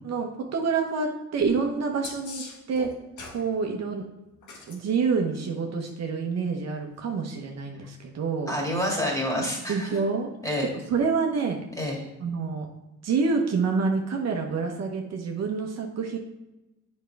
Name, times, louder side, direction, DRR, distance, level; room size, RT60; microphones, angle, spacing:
voice 1, 0.0-2.9 3.3-4.1 4.7-8.5 9.7-10.3 10.7-11.6 12.2-12.7 13.0-16.2, right 5 dB, 60° right, 2 dB, 1.0 m, -27 dB
sound 1, 2.0-3.4 4.4-4.8 6.9-7.0, left 4 dB, 75° left, 1.5 m, -40 dB
voice 2, 8.5-10.0 10.4-10.7 11.8-12.0, left 1 dB, 10° left, -2 dB, 2.2 m, -28 dB
7.4 x 5.3 x 3.4 m, 1.0 s
cardioid pair, 90°, 30 cm